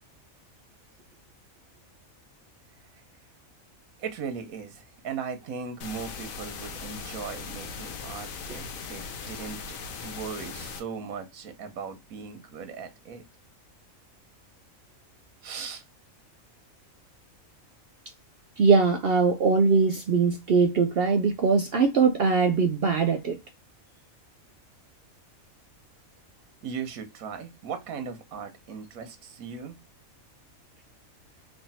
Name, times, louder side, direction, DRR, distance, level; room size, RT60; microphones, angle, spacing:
voice 1, 4.0-13.2 15.4-15.8 26.6-29.8, right 6 dB, 80° right, 1.2 m, -38 dB
sound 1, 5.8-10.8, left 5 dB, 75° left, 1.1 m, -39 dB
voice 2, 18.6-23.4, right 5 dB, 65° right, 0.6 m, -21 dB
3.2 x 2.6 x 4.1 m
omnidirectional pair, 1.4 m